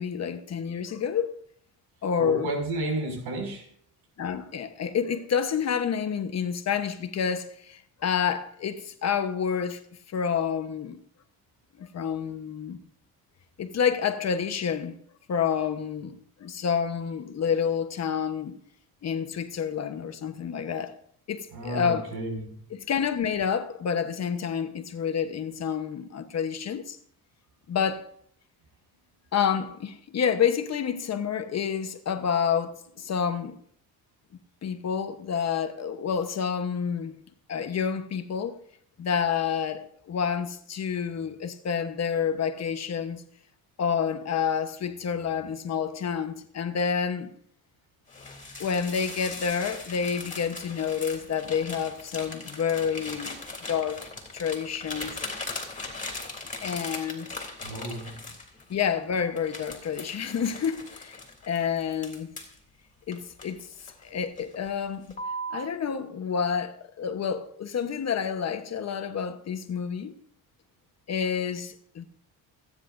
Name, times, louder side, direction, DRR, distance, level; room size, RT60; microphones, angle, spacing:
voice 1, 0.0-1.3 2.0-2.5 4.2-9.8 10.1-11.0 11.8-12.8 13.6-15.0 15.3-18.6 19.0-21.0 21.3-22.2 22.7-27.0 27.7-28.2 29.3-33.6 34.6-37.2 37.5-38.6 39.0-43.2 43.8-47.3 48.6-53.4 53.6-55.2 56.6-57.3 58.7-61.2 61.5-62.3 63.1-63.7 64.0-65.1 65.5-70.1 71.1-72.0, left 7 dB, 40° left, 1.1 m, -29 dB
voice 2, 2.2-3.6 21.5-22.5 57.6-58.1, right 2 dB, 80° right, 6.3 m, -32 dB
sound 1, 48.1-58.9 59.4-62.6 63.1-64.0 64.4-64.7 65.1-65.7, left 2 dB, 20° left, 3.1 m, -39 dB
29.0 x 10.0 x 2.6 m
cardioid pair, 140°, 39 cm